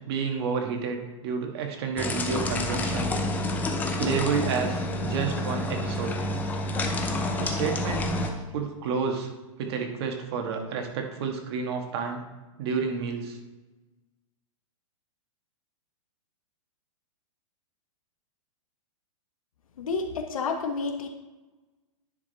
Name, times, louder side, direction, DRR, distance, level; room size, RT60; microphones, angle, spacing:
voice 1, 0.1-3.1 4.0-6.2 7.4-9.3 9.6-12.2 12.6-13.4, right 5 dB, 50° right, 3 dB, 1.5 m, -30 dB
sound 1, 2.0-8.3, left 1 dB, 10° left, 0.6 m, -28 dB
voice 2, 19.8-21.1, left 4 dB, 85° left, 4 dB, 1.3 m, -30 dB
10.0 x 5.1 x 4.0 m, 1.2 s
hypercardioid pair, 150°, 17 cm